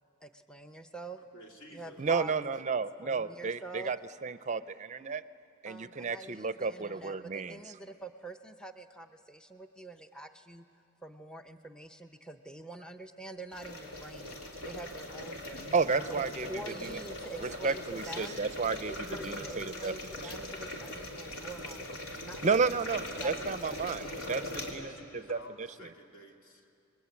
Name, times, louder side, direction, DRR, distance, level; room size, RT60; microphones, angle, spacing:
voice 1, 0.2-1.2 1.7-2.5 3.0-4.0 5.7-10.6 11.0-15.7 16.1-18.4 18.9-22.8 23.2-24.4, right 2 dB, 5° left, 7 dB, 0.6 m, -46 dB
voice 2, 1.3-2.3 24.6-26.5, right 1 dB, 70° left, 1 dB, 2.9 m, -51 dB
voice 3, 2.0-4.0 4.2-5.2 5.6-7.6 15.7-16.5 16.8-17.0 17.4-18.9 19.2-19.9 20.2-20.3 22.4-24.9 25.3-25.9, right 5 dB, 35° right, 13 dB, 0.5 m, -32 dB
sound 1, 13.5-24.7, left 1 dB, 90° left, 3.3 m, -41 dB
29.5 x 21.5 x 8.3 m, 2.6 s
head